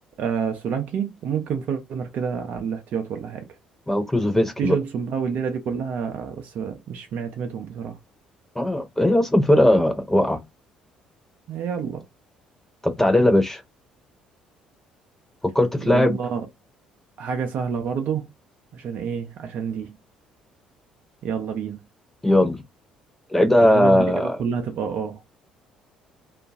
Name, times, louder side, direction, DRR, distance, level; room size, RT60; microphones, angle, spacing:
voice 1, 0.2-3.5 4.6-8.0 11.5-12.1 15.8-16.5 17.2-18.3 18.7-20.0 21.2-21.8 23.6-25.2, right 6 dB, 50° right, 0.4 m, -28 dB
voice 2, 3.9-4.8 8.6-10.4 12.8-13.6 15.4-16.2 22.2-22.6 23.3-24.4, left 1 dB, 10° left, 0.3 m, -19 dB
2.4 x 2.2 x 2.4 m
figure-of-eight pair, 50°, 4 cm